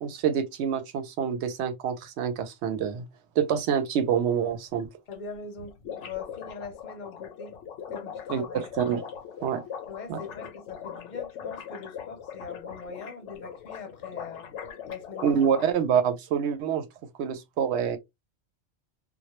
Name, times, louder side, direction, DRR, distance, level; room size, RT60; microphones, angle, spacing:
voice 1, 0.0-3.1 3.4-4.9 8.3-9.1 9.4-9.6 10.1-10.2 15.2-16.9 17.2-18.0, right 8 dB, 75° right, 0.8 m, -26 dB
sound 1, 4.5-4.6 4.8-4.9 5.1-5.2 5.4-15.7, left 7 dB, 80° left, 0.9 m, -40 dB
voice 2, 5.1-7.6 7.9-8.7 9.9-14.5 14.9-15.6, left 5 dB, 50° left, 0.7 m, -42 dB
2.2 x 2.0 x 2.9 m
omnidirectional pair, 1.2 m